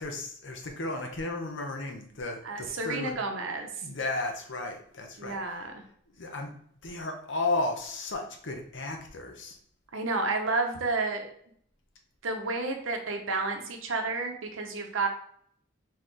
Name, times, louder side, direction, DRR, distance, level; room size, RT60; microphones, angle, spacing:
voice 1, 0.0-3.2 3.8-5.4 6.1-6.5 6.8-9.6, left 2 dB, 60° left, 3 dB, 0.8 m, -34 dB
voice 2, 2.4-3.7 5.2-5.8 9.9-11.3 12.2-15.1, right 3 dB, 75° right, 4 dB, 0.8 m, -31 dB
4.2 x 3.8 x 3.2 m, 0.63 s
head